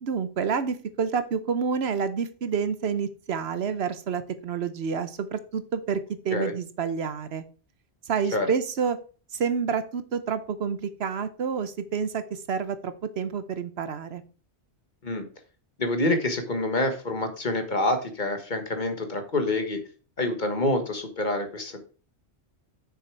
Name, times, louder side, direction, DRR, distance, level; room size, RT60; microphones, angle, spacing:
voice 1, 0.0-7.4 8.1-9.0 9.3-14.2, right 6 dB, 70° right, 12 dB, 1.0 m, -29 dB
voice 2, 15.8-19.8 20.2-21.8, left 2 dB, 45° left, 6 dB, 1.4 m, -27 dB
6.8 x 6.4 x 4.6 m, 0.37 s
omnidirectional pair, 1.1 m